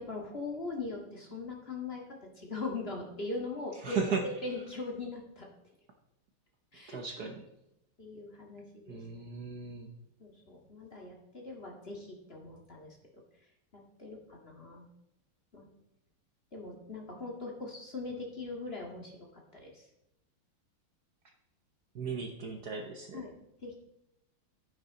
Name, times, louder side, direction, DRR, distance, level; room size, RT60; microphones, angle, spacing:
voice 1, 0.0-2.0 2.4-5.5 6.7-7.0 8.0-9.0 10.2-13.0 13.7-14.9 15.5-15.7 16.5-19.9 23.1-23.3 23.6-23.7, left 3 dB, 30° left, 0 dB, 2.1 m, -40 dB
voice 2, 3.8-4.3 6.9-7.4 8.9-9.9 21.9-23.2, right 5 dB, 55° right, 4 dB, 1.4 m, -36 dB
12.0 x 9.8 x 4.1 m, 0.87 s
omnidirectional pair, 2.3 m